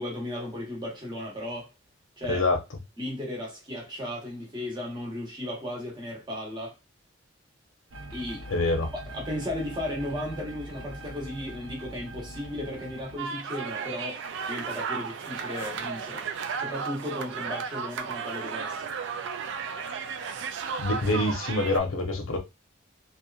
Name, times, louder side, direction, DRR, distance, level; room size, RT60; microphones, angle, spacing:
voice 1, 0.0-1.7 2.2-2.4 3.0-6.8 8.1-8.5 8.9-14.2 14.5-16.2 16.6-18.9, left 1 dB, 20° right, 0.9 m, -35 dB
voice 2, 2.3-2.6 8.5-8.9 20.8-22.4, left 2 dB, 80° left, 0.8 m, -25 dB
sound 1, 7.9-13.2, right 1 dB, 85° right, 0.7 m, -42 dB
sound 2, 13.2-21.8, right 6 dB, 60° right, 0.3 m, -34 dB
2.8 x 2.3 x 2.3 m
head